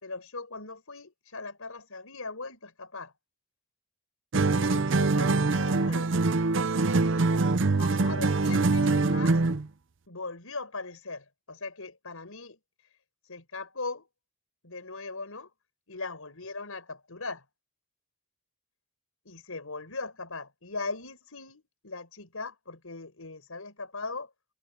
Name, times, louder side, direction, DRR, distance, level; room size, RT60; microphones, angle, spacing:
voice 1, 0.0-3.1 4.5-6.1 7.8-9.4 10.1-12.6 13.3-14.1 14.6-15.5 15.9-17.5 19.2-24.3, left 3 dB, 80° left, 4.9 m, -39 dB
sound 1, 4.3-9.7, right 3 dB, 55° right, 0.6 m, -24 dB
head